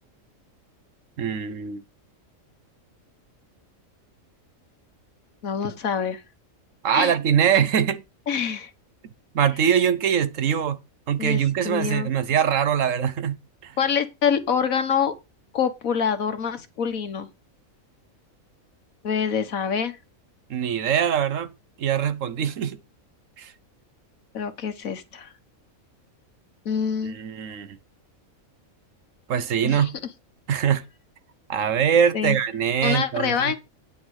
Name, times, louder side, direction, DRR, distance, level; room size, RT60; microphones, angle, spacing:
voice 1, 1.2-1.8 6.8-8.0 9.3-10.8 11.1-13.4 13.6-13.7 20.5-21.5 21.8-22.8 23.4-23.5 27.0-27.8 29.3-29.9 30.5-30.8 31.5-33.5, right 8 dB, 70° right, 1.2 m, -23 dB
voice 2, 5.4-6.2 6.9-7.1 8.3-8.7 11.2-12.1 13.8-15.1 15.5-17.3 19.0-20.0 24.3-25.3 26.6-27.2 29.6-29.9 32.1-32.4 32.8-33.6, left 7 dB, 85° left, 1.7 m, -25 dB
9.4 x 7.1 x 4.8 m
omnidirectional pair, 1.4 m